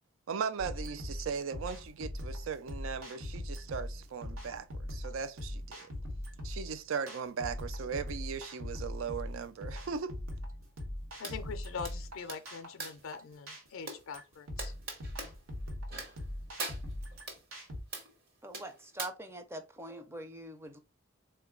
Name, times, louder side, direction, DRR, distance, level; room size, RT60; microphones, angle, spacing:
voice 1, 0.3-5.9 6.4-10.2, right 6 dB, 75° right, 0.4 m, -38 dB
sound 1, 0.6-17.8, left 1 dB, 90° right, 1.2 m, -41 dB
voice 2, 11.2-14.7, left 5 dB, 75° left, 0.4 m, -43 dB
sound 2, 11.2-11.4 11.8-13.1 13.9-14.0 14.6-15.3 15.9-16.3 16.6-17.4 17.9-18.1 18.5-19.1, right 3 dB, 50° right, 1.1 m, -41 dB
voice 3, 18.4-20.8, right 1 dB, 10° right, 0.4 m, -44 dB
3.8 x 2.2 x 3.6 m
head